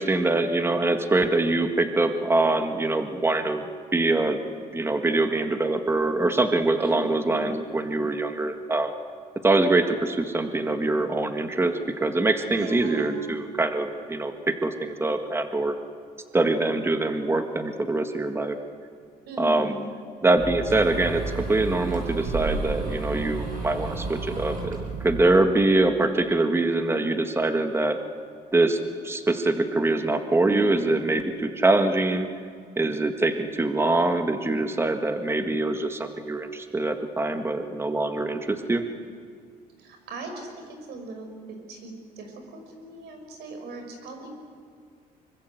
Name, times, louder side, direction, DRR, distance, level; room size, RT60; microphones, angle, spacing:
voice 1, 0.0-3.6 3.9-4.4 4.7-8.9 9.4-15.8 16.3-18.6 19.4-19.7 20.2-28.0 28.5-28.8 29.0-32.3 32.8-38.8, right 2 dB, 15° right, 6 dB, 1.7 m, -24 dB
voice 2, 6.8-7.4 12.5-13.2 19.3-19.9 39.8-40.5 40.9-44.3, right 2 dB, 75° right, 4 dB, 5.8 m, -39 dB
sound 1, 20.4-25.2, right 4 dB, 50° right, 7.8 m, -32 dB
25.0 x 23.0 x 8.1 m, 2.1 s
cardioid pair, 110°, 17 cm